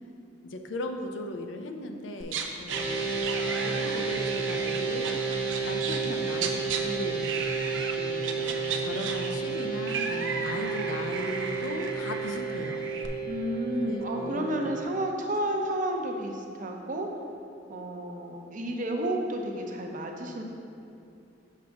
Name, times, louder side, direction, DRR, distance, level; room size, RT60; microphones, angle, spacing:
voice 1, 0.4-3.1 3.6-5.1 5.6-7.3 7.8-12.8 13.8-14.8, left 1 dB, 90° left, 5 dB, 0.6 m, -37 dB
sound 1, 2.2-2.8 3.2-6.8 7.2-8.0 8.2-13.1, right 5 dB, 85° right, 0.6 m, -35 dB
sound 2, 2.7-14.8, right 4 dB, 70° right, 1.3 m, -31 dB
voice 2, 6.8-7.2 13.3-17.1 17.7-20.4, right 1 dB, 45° right, 2 dB, 0.7 m, -31 dB
6.6 x 6.2 x 3.5 m, 2.6 s
head